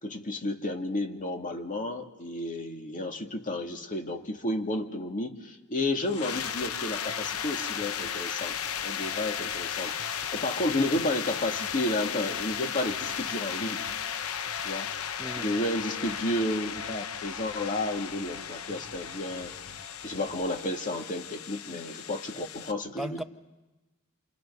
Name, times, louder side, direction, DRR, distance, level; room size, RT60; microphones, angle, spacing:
voice 1, 0.0-8.6 8.8-13.9 14.6-14.9 15.4-19.5 20.0-23.2, left 1 dB, 40° left, 2.2 m, -32 dB
sound 1, 6.1-22.7, left 8 dB, 75° left, 0.8 m, -35 dB
sound 2, 6.3-20.5, left 1 dB, 55° left, 3.7 m, -55 dB
voice 2, 15.2-15.6 21.7-21.8 23.0-23.2, right 1 dB, ahead, 0.8 m, -37 dB
29.0 x 28.5 x 5.6 m
head